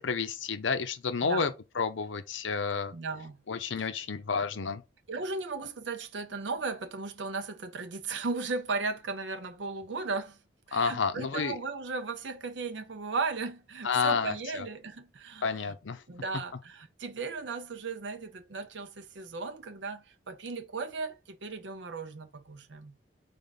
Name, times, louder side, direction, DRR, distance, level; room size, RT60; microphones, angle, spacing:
voice 1, 0.0-2.9 3.5-4.8 10.7-11.6 13.8-14.7 15.4-16.0, left 5 dB, 90° left, 0.6 m, -30 dB
voice 2, 1.2-1.5 2.9-3.4 5.1-10.4 10.7-15.7 16.1-23.0, right 4 dB, 75° right, 0.6 m, -36 dB
3.8 x 3.5 x 4.0 m
head